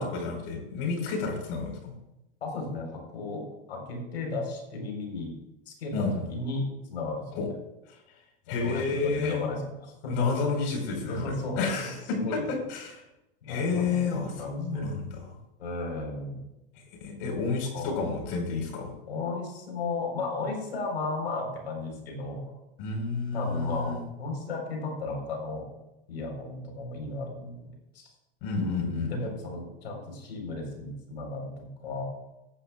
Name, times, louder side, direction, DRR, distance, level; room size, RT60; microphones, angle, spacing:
voice 1, 0.0-1.9 5.9-6.3 7.4-7.5 8.5-9.5 10.1-12.2 12.7-13.0 13.5-15.2 17.0-18.9 22.8-24.0 28.4-29.3, left 4 dB, 60° left, 2 dB, 4.7 m, -30 dB
voice 2, 2.4-5.3 5.7-7.5 8.6-10.5 11.0-12.4 13.4-14.9 15.6-16.4 17.2-17.4 17.7-18.1 19.1-22.4 23.3-25.6 26.1-28.1 28.5-32.0, left 2 dB, 90° left, 2 dB, 4.3 m, -35 dB
15.5 x 11.5 x 2.4 m, 0.90 s
hypercardioid pair, 110°, 31 cm